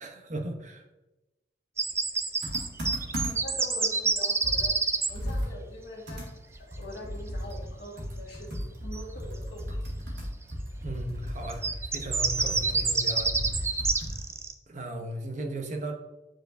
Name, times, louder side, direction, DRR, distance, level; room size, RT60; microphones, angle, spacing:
voice 1, 0.0-0.8 10.8-13.3 14.7-15.9, right 1 dB, 45° right, 4 dB, 0.7 m, -36 dB
sound 1, 1.8-5.1 8.9-9.0 11.4-14.5, right 4 dB, 15° right, 0.3 m, -27 dB
Computer keyboard, 2.4-3.6 4.0-4.1 4.4-14.3, equal, 85° right, 2.1 m, -36 dB
voice 2, 3.1-4.8 5.1-6.3 6.8-9.6 14.9-15.0, left 1 dB, 70° left, -2 dB, 1.9 m, -43 dB
8.9 x 4.5 x 2.6 m, 1.0 s
head